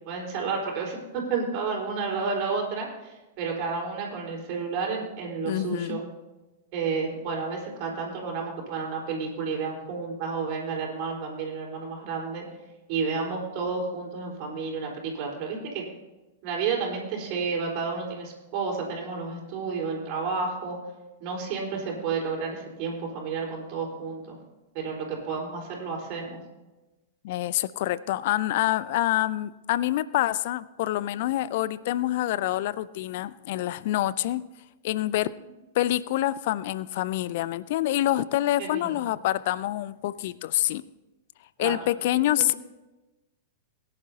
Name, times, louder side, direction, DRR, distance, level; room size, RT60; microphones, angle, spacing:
voice 1, 0.1-6.0 6.7-12.5 12.9-15.8 16.4-20.8 21.2-24.4 24.7-26.4 38.6-39.0 41.6-41.8 42.1-42.6, right 5 dB, 45° right, -1 dB, 4.2 m, -31 dB
voice 2, 5.5-6.0 27.2-34.4 34.8-35.3 35.8-40.8 41.6-42.5, left 14 dB, 50° left, 18 dB, 0.4 m, -26 dB
21.5 x 10.5 x 2.8 m, 1.1 s
figure-of-eight pair, 100°, 0 cm